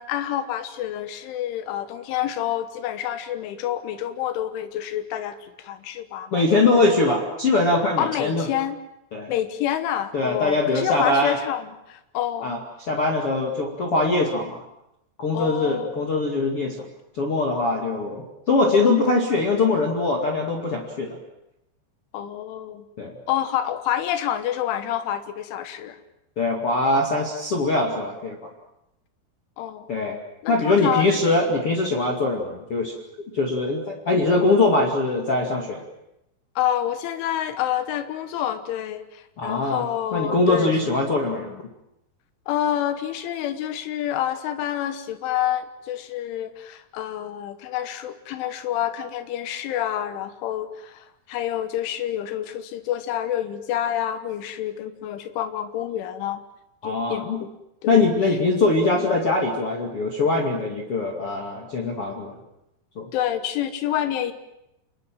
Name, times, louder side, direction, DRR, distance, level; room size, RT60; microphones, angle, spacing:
voice 1, 0.0-6.4 8.0-8.8 9.3-12.5 15.3-15.9 22.1-22.9 23.3-26.0 29.6-31.5 36.6-40.7 42.5-56.4 56.8-57.5 57.8-58.4 59.0-59.1 63.1-64.3, left 11 dB, 85° left, 10 dB, 3.6 m, -28 dB
voice 2, 6.3-8.5 9.1-9.3 10.1-11.4 12.4-12.6 12.9-14.6 15.2-16.8 17.1-21.2 23.0-23.1 26.4-28.4 29.9-30.2 30.5-32.9 33.3-35.8 39.4-39.8 40.1-41.6 56.8-57.4 57.9-62.4 63.0-63.1, left 3 dB, 40° left, 0 dB, 2.4 m, -22 dB
29.0 x 20.5 x 7.7 m, 0.85 s
omnidirectional pair, 5.4 m